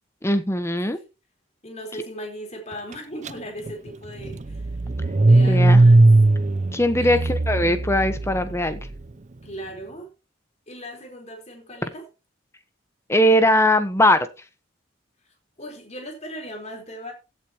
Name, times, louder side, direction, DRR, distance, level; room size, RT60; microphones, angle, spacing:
voice 1, 0.2-1.0 5.5-5.8 6.7-8.8 13.1-14.2, left 1 dB, 15° left, 1.1 m, -20 dB
voice 2, 1.6-4.7 5.1-6.1 7.0-7.3 9.4-10.1 10.7-12.1 15.6-17.1, equal, 35° left, 4.3 m, -37 dB
Car / Engine starting, 3.3-3.4 3.7-8.9, right 2 dB, 40° right, 0.6 m, -18 dB
16.0 x 8.3 x 3.0 m
head